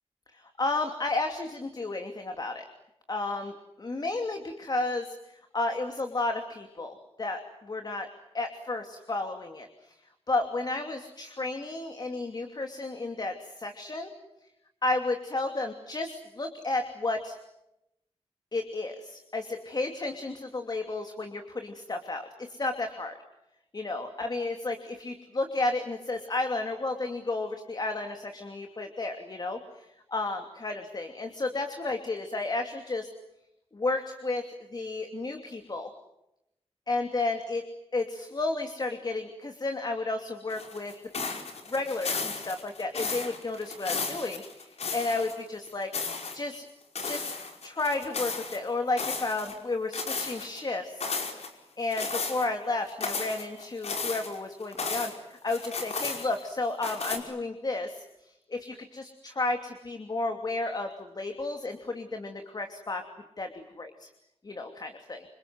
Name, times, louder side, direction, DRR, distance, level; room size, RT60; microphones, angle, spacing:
voice 1, 0.3-2.6 3.1-3.5 3.8-5.1 5.5-8.1 8.3-9.7 10.3-14.1 14.8-17.4 18.5-23.1 23.7-29.9 30.1-33.1 33.7-34.5 34.7-35.9 36.9-37.6 37.9-40.9 41.7-45.9 46.3-46.7 47.0-47.3 47.6-51.1 51.8-63.0 63.4-64.1 64.4-65.2, left 2 dB, 40° left, 5 dB, 2.8 m, -32 dB
sound 1, 40.5-45.4 45.7-46.4 46.9-48.6 49.0-49.6 49.9-50.6 51.0-51.5 51.9-52.5 52.9-55.2 55.5-56.5 56.8-57.2, left 4 dB, 90° left, 5.1 m, -34 dB
28.5 x 26.5 x 7.8 m, 0.87 s
wide cardioid pair, 125°, 11 cm